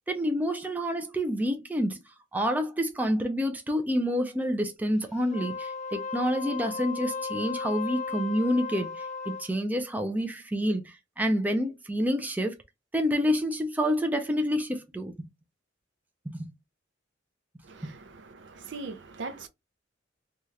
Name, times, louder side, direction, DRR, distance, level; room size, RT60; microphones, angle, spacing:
voice 1, 0.1-2.0 2.3-8.9 9.3-12.6 12.9-15.2 16.4-16.5 17.8-17.9, equal, 10° right, 0.4 m, -28 dB
Wind instrument woodwind instrument, 5.2-9.5, left 5 dB, 40° left, 0.8 m, -35 dB
voice 2, 17.6-19.5, right 3 dB, 70° right, 0.5 m, -41 dB
2.7 x 2.4 x 3.2 m
head